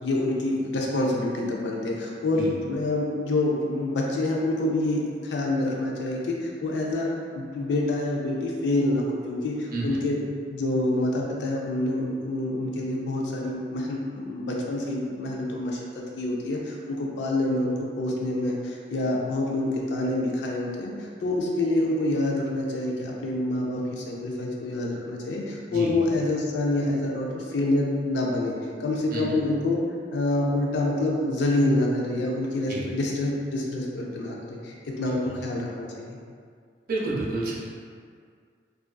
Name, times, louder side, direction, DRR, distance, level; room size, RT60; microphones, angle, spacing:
voice 1, 0.0-7.1 7.3-10.2 10.5-15.8 16.2-28.5 28.8-29.8 30.1-36.2, left 2 dB, 75° left, -2 dB, 0.4 m, -27 dB
voice 2, 9.7-10.0 25.7-25.9 29.1-29.4 32.7-32.8 35.1-35.4 36.9-37.6, right 2 dB, 55° right, -4 dB, 0.5 m, -30 dB
2.4 x 2.3 x 2.2 m, 2.1 s
head